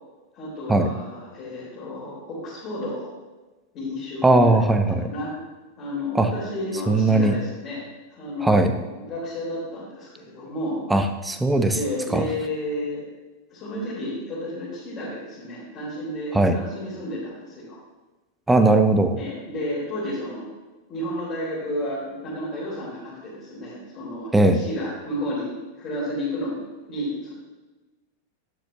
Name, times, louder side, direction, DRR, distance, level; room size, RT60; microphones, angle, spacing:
voice 1, 0.3-3.1 3.7-4.6 4.9-5.3 5.8-7.8 8.1-10.8 11.7-13.0 13.5-17.8 19.2-20.5 20.9-25.5 25.8-26.6 26.8-27.3, left 1 dB, 30° left, -9 dB, 3.4 m, -32 dB
voice 2, 4.2-5.1 6.1-6.3 6.9-7.4 8.4-8.7 10.9-11.8 12.1-12.3 16.3-16.6 18.5-19.2 24.3-24.6, right 2 dB, 10° right, 7 dB, 0.8 m, -18 dB
11.5 x 9.4 x 2.7 m, 1.2 s
figure-of-eight pair, 90°, 0 cm